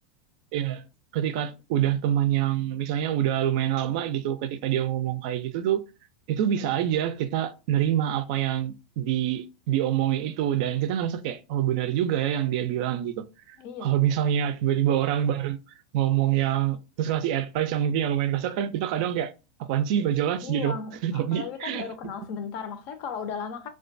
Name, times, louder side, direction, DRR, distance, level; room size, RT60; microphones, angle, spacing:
voice 1, 0.5-0.8 1.1-5.8 6.3-15.6 15.9-19.3 19.6-20.8 21.0-21.9, right 11 dB, 60° right, 0.3 m, -26 dB
voice 2, 13.6-14.0 20.4-23.7, left 6 dB, 55° left, 0.5 m, -36 dB
2.3 x 2.2 x 2.5 m
hypercardioid pair, 110°, 5 cm